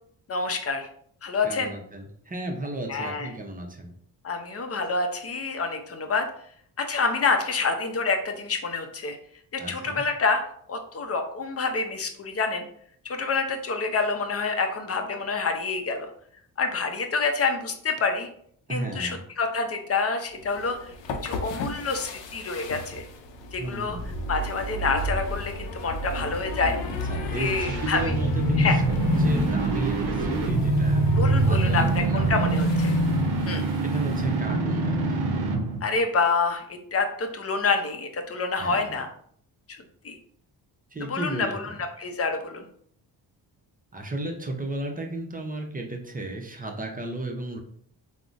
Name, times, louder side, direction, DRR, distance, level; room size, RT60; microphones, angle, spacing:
voice 1, 0.3-0.9 1.2-1.7 2.9-3.3 4.2-6.3 6.8-9.2 9.5-10.4 10.7-12.7 13.0-16.1 16.6-18.3 18.7-20.8 21.2-23.1 23.5-24.0 24.3-26.8 27.4-28.1 28.6-28.8 31.2-32.9 33.5-33.6 35.8-39.1 40.0-40.1 41.0-42.6, left 4 dB, 35° left, 5 dB, 0.6 m, -27 dB
voice 2, 1.4-3.9 9.6-10.0 18.7-19.2 23.6-24.2 26.9-28.8 29.2-32.6 33.8-35.2 38.6-39.0 40.9-41.7 43.9-47.6, right 2 dB, 20° right, 2 dB, 0.6 m, -34 dB
sound 1, 20.4-34.3, left 1 dB, 75° left, 0.6 m, -34 dB
sound 2, 27.2-35.8, right 2 dB, 60° right, 0.7 m, -24 dB
3.6 x 2.1 x 2.4 m, 0.63 s
cardioid pair, 65°, 44 cm